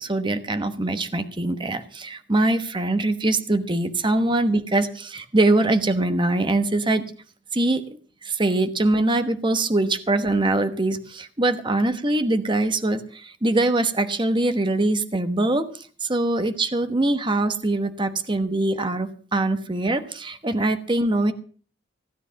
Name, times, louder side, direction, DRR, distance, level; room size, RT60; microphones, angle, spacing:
voice 1, 0.0-7.0 7.5-7.8 8.2-21.3, right 2 dB, 25° right, 9 dB, 1.1 m, -23 dB
16.5 x 9.8 x 5.7 m, 0.43 s
head